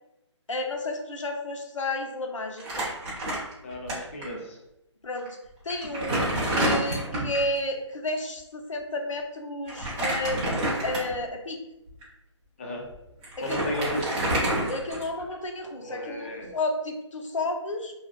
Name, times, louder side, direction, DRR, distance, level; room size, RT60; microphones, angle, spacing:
voice 1, 0.5-2.9 5.0-5.4 5.6-11.6 13.4-13.8 14.7-17.9, left 2 dB, 85° left, 3 dB, 0.5 m, -32 dB
Crumpling crinkling, 2.6-3.9 4.2-4.3 5.2-5.3 5.7-7.5 9.7-11.3 11.9-12.0 12.9-13.0 13.2-15.3, right 1 dB, 15° right, 0.6 m, -28 dB
voice 2, 3.6-4.6 12.6-12.9 13.4-14.2 15.8-16.6, equal, 25° left, -1 dB, 0.3 m, -33 dB
2.6 x 2.1 x 2.3 m, 0.87 s
figure-of-eight pair, 155°, 16 cm